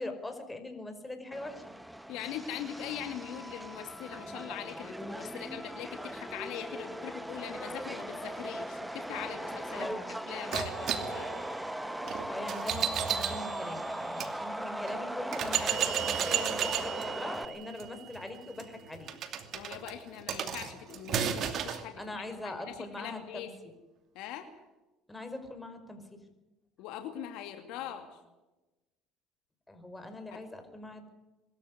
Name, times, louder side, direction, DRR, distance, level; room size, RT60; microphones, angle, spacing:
voice 1, 0.0-1.6 9.7-10.2 12.3-19.1 22.0-23.5 25.1-26.2 29.7-31.1, left 2 dB, 10° left, 7 dB, 5.2 m, -42 dB
Subway metro underground, 1.3-17.5, right 1 dB, 5° right, 1.4 m, -39 dB
voice 2, 2.1-11.4 19.5-23.5 24.1-24.5 26.8-28.1 30.3-30.4, left 10 dB, 70° left, 6 dB, 2.4 m, -42 dB
sound 1, 10.5-14.3 14.9-15.0 15.3-21.8, right 9 dB, 55° right, 2.6 m, -34 dB
24.0 x 14.0 x 9.8 m, 1.1 s
hypercardioid pair, 75°, 0 cm